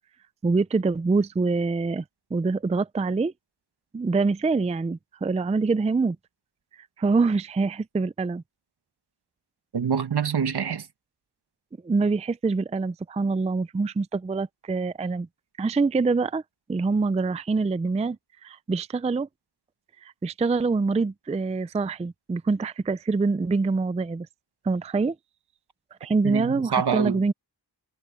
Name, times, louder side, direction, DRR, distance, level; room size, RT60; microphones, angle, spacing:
voice 1, 0.4-2.0 2.3-3.3 3.9-6.2 7.0-8.4 11.8-15.3 15.6-16.4 16.7-18.2 18.4-19.3 20.0-24.3 24.6-25.2 26.0-27.3, right 4 dB, 15° right, 0.4 m, -25 dB
voice 2, 9.7-10.9 26.2-27.2, right 7 dB, 70° right, 1.3 m, -26 dB
wide cardioid pair, 120°, 41 cm